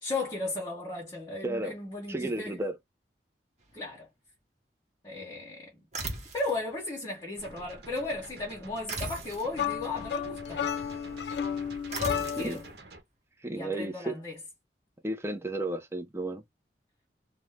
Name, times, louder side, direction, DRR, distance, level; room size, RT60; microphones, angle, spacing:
voice 1, 0.0-2.7 3.7-4.1 5.0-5.8 6.3-10.7 12.1-12.6 13.5-14.4, left 2 dB, 25° left, 0.8 m, -36 dB
voice 2, 2.1-2.8 12.4-12.6 13.4-14.2 15.0-16.4, right 1 dB, 15° right, 0.5 m, -33 dB
sound 1, 5.9-6.6 8.9-9.5 11.9-12.6, right 2 dB, 40° right, 0.9 m, -36 dB
sound 2, 7.4-13.0, right 2 dB, 70° right, 0.8 m, -49 dB
sound 3, 9.5-12.7, left 8 dB, 80° left, 0.4 m, -32 dB
2.5 x 2.1 x 3.1 m
head